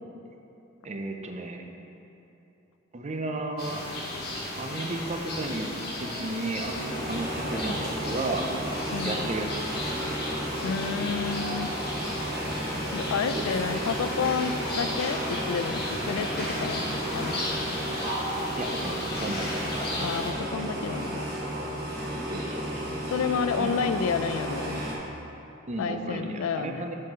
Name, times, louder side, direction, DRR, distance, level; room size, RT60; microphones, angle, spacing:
voice 1, 0.8-1.6 2.9-3.8 4.6-6.8 7.1-8.5 9.0-9.6 13.3-13.7 18.6-19.9 22.3-22.9 23.6-23.7 25.7-27.0, right 2 dB, 35° right, 4 dB, 0.5 m, -34 dB
sound 1, 3.6-20.3, left 1 dB, 50° left, 1.4 m, -35 dB
sound 2, 6.6-25.0, right 1 dB, 50° right, 1.2 m, -33 dB
voice 2, 8.9-9.3 10.6-11.7 12.9-17.7 20.0-21.2 23.1-24.8 25.8-26.8, left 6 dB, 80° left, 11 dB, 0.3 m, -30 dB
5.6 x 5.4 x 5.2 m, 2.9 s
head